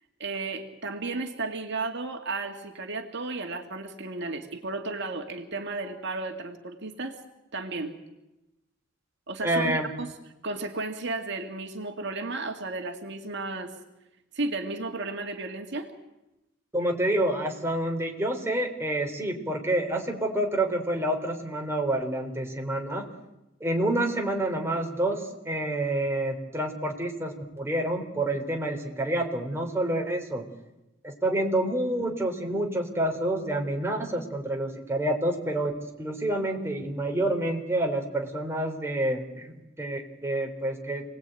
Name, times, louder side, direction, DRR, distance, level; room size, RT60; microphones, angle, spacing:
voice 1, 0.2-7.2 7.5-7.9 9.3-10.1 10.4-13.8 14.3-15.9, right 3 dB, 60° right, 4 dB, 2.2 m, -33 dB
voice 2, 9.4-9.9 16.7-23.0 23.6-30.4 31.0-35.7 36.0-41.0, right 1 dB, 15° right, 2 dB, 3.8 m, -28 dB
28.0 x 19.5 x 9.2 m, 0.97 s
head